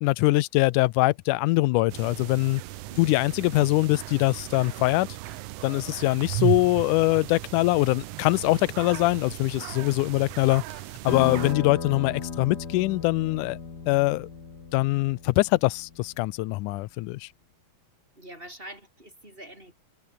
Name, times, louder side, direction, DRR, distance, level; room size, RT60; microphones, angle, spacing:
voice 1, 0.0-2.6 3.0-5.1 5.6-10.6 11.0-13.6 13.9-14.3 14.7-17.3, left 20 dB, 90° left, 2.1 m, -23 dB
sound 1, 1.9-11.5, right 17 dB, 85° right, 1.4 m, -35 dB
voice 2, 2.9-3.5 18.2-19.7, right 1 dB, 15° right, 8.1 m, -45 dB
sound 2, 11.1-16.2, left 5 dB, 35° left, 2.9 m, -36 dB
omnidirectional pair, 3.5 m